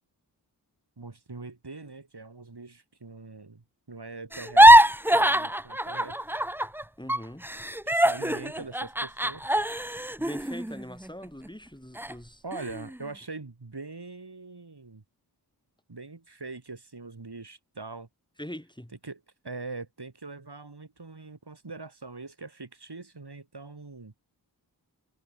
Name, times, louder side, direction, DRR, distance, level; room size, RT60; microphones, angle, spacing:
voice 1, 1.0-6.2 7.9-9.4 12.4-15.0 15.9-18.1 19.0-24.1, right 3 dB, 70° right, 5.0 m, -42 dB
sound 1, 4.3-6.8 7.1-11.5 12.0-12.1 12.5-13.0, right 1 dB, 5° right, 0.8 m, -22 dB
voice 2, 7.0-7.5 10.2-12.4 18.4-18.9, equal, 10° left, 5.4 m, -42 dB
wide cardioid pair, 55°, 41 cm